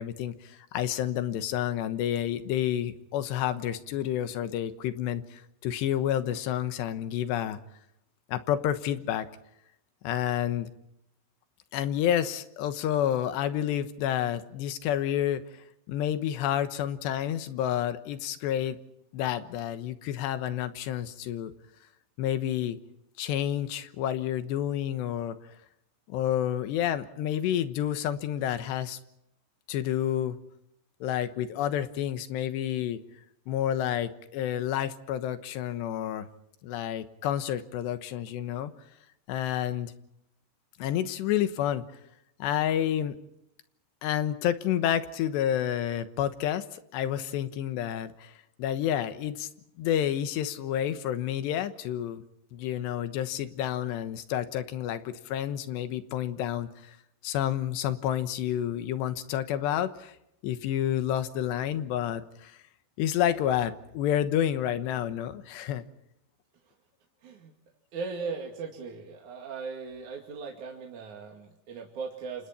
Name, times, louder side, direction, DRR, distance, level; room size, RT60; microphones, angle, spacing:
voice 1, 0.0-7.6 8.3-9.3 10.0-10.7 11.7-15.4 15.9-18.8 19.1-21.5 22.2-22.8 23.2-25.4 26.1-29.0 29.7-30.4 31.0-33.0 33.5-36.3 36.6-38.7 39.3-39.9 40.8-41.8 42.4-43.2 44.0-49.5 49.8-52.2 52.5-57.0 57.2-60.1 60.4-62.6 63.0-65.8, left 11 dB, 90° left, 11 dB, 3.4 m, -29 dB
voice 2, 67.2-67.5 67.9-72.5, right 5 dB, 50° right, 0 dB, 3.4 m, -38 dB
29.5 x 27.0 x 4.4 m, 0.80 s
omnidirectional pair, 4.9 m